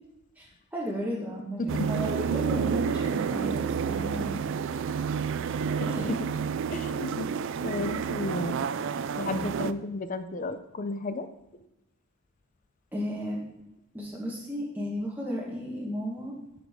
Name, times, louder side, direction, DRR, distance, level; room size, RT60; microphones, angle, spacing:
voice 1, 0.7-1.6 1.9-4.4 5.9-6.1 12.9-13.4 13.9-16.3, equal, 10° right, -5 dB, 1.4 m, -34 dB
sound 1, 1.7-9.7, right 6 dB, 60° right, 0.4 m, -30 dB
voice 2, 5.8-6.2 6.7-7.3 7.6-8.8 9.2-11.3, left 2 dB, 40° left, 9 dB, 0.5 m, -33 dB
10.5 x 6.3 x 3.6 m, 0.89 s
head